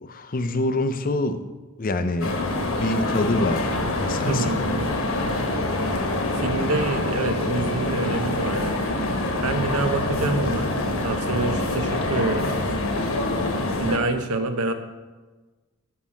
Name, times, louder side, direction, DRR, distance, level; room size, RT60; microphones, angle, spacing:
voice 1, 0.0-1.5 1.8-2.3 2.8-4.6, left 2 dB, 40° left, 10 dB, 0.5 m, -26 dB
sound 1, 2.2-14.0, left 2 dB, 65° left, 1.1 m, -25 dB
voice 2, 4.3-4.9 6.4-8.8 9.4-12.5 13.8-14.7, right 2 dB, 75° right, 8 dB, 0.8 m, -27 dB
6.2 x 5.6 x 7.1 m, 1.3 s
head